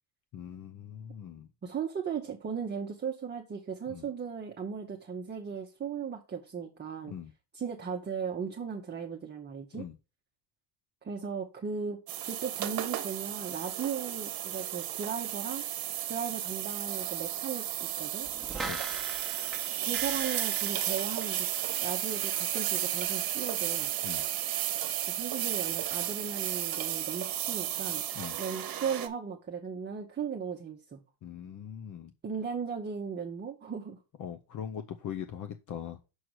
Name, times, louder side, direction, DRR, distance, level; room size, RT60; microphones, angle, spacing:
voice 1, 0.3-1.5 3.9-4.1 7.1-7.3 9.7-10.0 18.6-18.8 24.0-24.2 28.1-28.4 31.2-32.1 34.2-36.0, left 9 dB, 45° left, 7 dB, 0.7 m, -41 dB
voice 2, 1.6-7.1 7.5-9.8 11.0-12.0 12.3-15.6 16.1-18.3 19.8-21.5 21.8-23.9 25.1-28.0 28.4-31.0 32.2-34.0, right 6 dB, 25° right, 1 dB, 0.9 m, -37 dB
sound 1, 12.1-29.1, right 12 dB, 55° right, 1.1 m, -33 dB
sound 2, 18.2-21.8 22.1-22.2, right 2 dB, ahead, 1.1 m, -41 dB
6.4 x 4.6 x 6.3 m, 0.31 s
cardioid pair, 140°, 43 cm